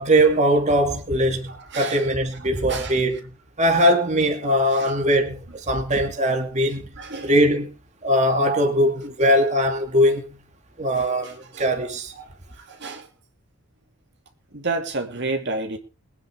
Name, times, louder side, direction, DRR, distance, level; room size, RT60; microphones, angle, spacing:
voice 1, 0.0-3.2 3.6-6.9 7.2-7.7 8.0-10.2 10.8-12.1, equal, 35° right, 2.4 m, -20 dB
voice 2, 1.5-2.0 2.7-3.0 3.8-3.9 4.7-4.9 7.0-7.3 10.9-11.7 12.2-13.1 14.5-15.8, right 3 dB, 55° right, 2.5 m, -31 dB
22.0 x 9.8 x 3.6 m
head